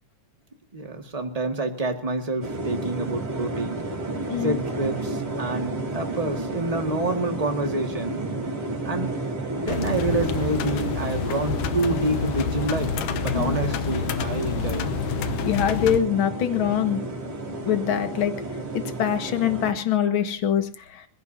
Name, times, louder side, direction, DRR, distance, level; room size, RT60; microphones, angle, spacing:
voice 1, 0.7-3.8 4.4-8.3 8.8-9.1 9.4-13.0 13.2-14.9, right 2 dB, 15° right, 4 dB, 1.4 m, -28 dB
sound 1, 2.4-19.7, right 2 dB, 40° right, 4.3 m, -32 dB
sound 2, 9.7-16.0, left 7 dB, 80° left, 2.5 m, -28 dB
voice 2, 15.4-17.0 17.6-18.3 18.7-20.7, left 9 dB, 45° left, 7 dB, 2.1 m, -23 dB
27.5 x 16.5 x 2.8 m, 0.37 s
omnidirectional pair, 3.6 m